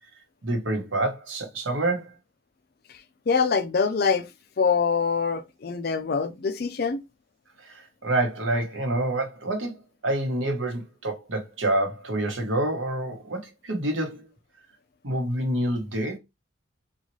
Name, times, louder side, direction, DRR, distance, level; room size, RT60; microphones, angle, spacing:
voice 1, 0.4-2.1 7.6-14.2 15.0-16.2, right 1 dB, 75° right, 1.1 m, -27 dB
voice 2, 3.3-4.3 4.6-7.0, left 5 dB, 50° left, 0.4 m, -24 dB
3.9 x 2.4 x 3.1 m
head